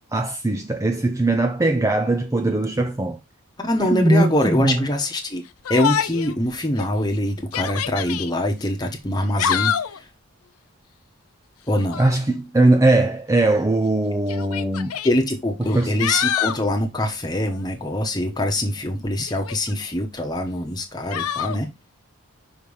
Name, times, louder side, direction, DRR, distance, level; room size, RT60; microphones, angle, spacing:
voice 1, 0.0-3.2 3.8-4.8 12.0-15.0 15.6-16.0, right 2 dB, 15° right, 0.4 m, -20 dB
voice 2, 3.6-5.4 5.7-10.0 11.7-12.0 15.0-21.7, left 1 dB, 20° left, 1.0 m, -24 dB
Yell, 5.7-6.3 6.8-6.9 7.4-8.3 9.2-10.0 11.7-12.2 13.3-13.4 14.3-15.1 15.7-16.6 19.3-19.9 21.1-21.6, left 9 dB, 85° left, 0.5 m, -26 dB
5.6 x 3.4 x 5.4 m
head